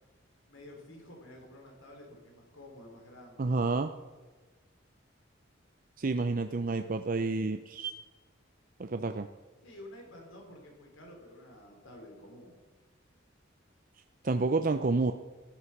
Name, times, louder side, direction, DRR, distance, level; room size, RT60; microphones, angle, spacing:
voice 1, 0.5-3.5 9.6-12.6, left 1 dB, 90° left, 2 dB, 3.9 m, -50 dB
voice 2, 3.4-3.9 6.0-7.9 8.8-9.3 14.2-15.1, right 3 dB, 45° right, 7 dB, 0.6 m, -29 dB
15.0 x 11.5 x 6.0 m, 1.3 s
head